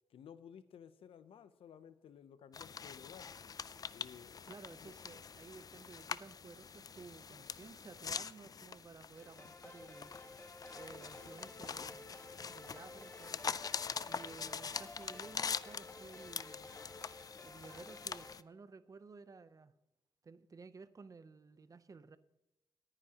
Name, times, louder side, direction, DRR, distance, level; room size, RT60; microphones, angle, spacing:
voice 1, 0.1-3.3 3.9-5.0, left 8 dB, 90° left, 13 dB, 0.6 m, -56 dB
sound 1, 2.5-18.4, left 6 dB, 45° left, 0.4 m, -44 dB
voice 2, 4.5-10.1 10.7-12.1 12.5-13.8 14.1-16.7 17.4-19.7 20.2-22.2, right 4 dB, 40° right, 14 dB, 0.6 m, -55 dB
sound 2, 9.2-18.3, left 2 dB, 25° left, 1.3 m, -54 dB
18.5 x 9.9 x 2.9 m, 0.91 s
cardioid pair, 85°, 9 cm